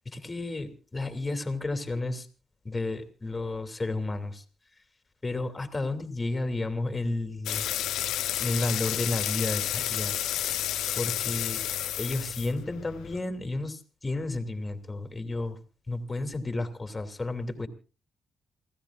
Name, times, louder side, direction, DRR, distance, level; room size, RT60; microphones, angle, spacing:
voice 1, 0.0-2.3 2.6-4.4 5.2-7.7 8.4-10.2 10.9-11.6 12.0-15.6 15.9-17.7, left 2 dB, 20° left, 7 dB, 2.7 m, -32 dB
sound 1, 7.5-13.2, left 12 dB, 85° left, 0.8 m, -31 dB
28.0 x 16.0 x 2.5 m, 0.35 s
cardioid pair, 90°, 0 cm